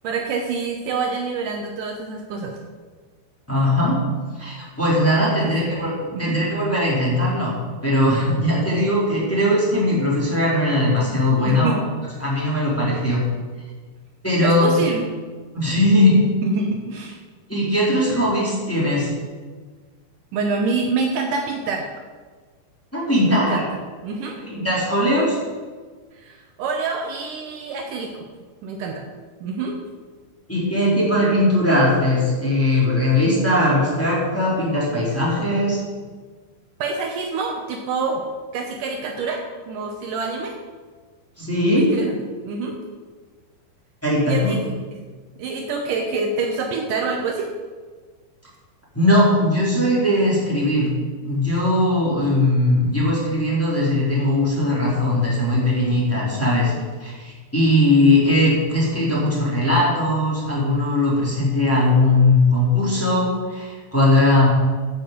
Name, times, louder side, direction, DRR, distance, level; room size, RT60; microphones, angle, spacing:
voice 1, 0.0-2.6 5.4-5.7 6.1-6.4 11.5-11.8 14.4-15.0 16.4-17.2 20.3-21.8 23.2-23.6 24.0-24.4 26.1-28.3 28.6-29.0 29.4-29.8 36.8-38.2 38.5-39.4 39.7-40.5 41.7-42.2 42.4-42.7 44.2-44.7 45.4-47.5, right 4 dB, 90° right, 2 dB, 1.8 m, -26 dB
voice 2, 3.5-4.0 4.4-7.5 7.8-11.7 12.2-13.2 14.2-14.8 15.5-16.2 17.5-19.1 22.9-23.6 24.5-25.4 30.5-35.8 41.4-41.9 44.0-44.5 48.9-50.9 51.2-56.7 57.0-64.5, left 1 dB, 5° left, -7 dB, 3.5 m, -19 dB
10.5 x 8.4 x 7.7 m, 1.5 s
omnidirectional pair, 5.2 m